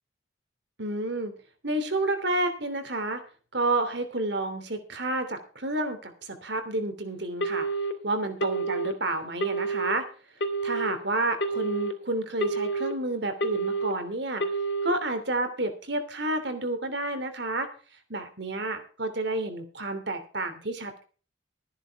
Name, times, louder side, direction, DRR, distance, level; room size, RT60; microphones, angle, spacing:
voice 1, 0.8-1.3 1.6-3.2 3.5-7.7 8.0-10.1 10.6-14.4 14.8-17.7 18.1-21.0, right 2 dB, 60° right, 8 dB, 3.1 m, -30 dB
Telephone, 7.4-7.9 8.4-8.9 9.4-9.9 10.4-10.9 11.4-11.9 12.4-12.9 13.4-13.9 14.4-14.9, right 3 dB, 60° left, 2.8 m, -28 dB
14.5 x 10.5 x 4.8 m, 0.38 s
head